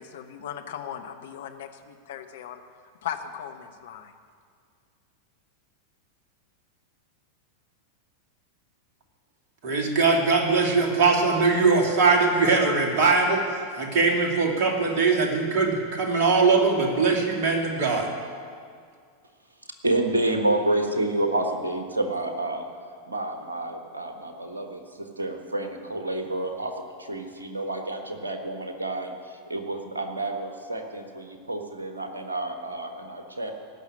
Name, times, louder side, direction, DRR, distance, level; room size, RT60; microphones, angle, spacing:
voice 1, 0.0-2.6 3.0-4.1, left 9 dB, 55° left, 6 dB, 1.1 m, -37 dB
voice 2, 9.6-18.1, right 4 dB, 45° right, 1 dB, 2.6 m, -21 dB
voice 3, 19.8-22.7 23.1-33.5, right 2 dB, 75° right, 5 dB, 1.5 m, -29 dB
17.0 x 6.3 x 9.8 m, 2.1 s
figure-of-eight pair, 90°, 0 cm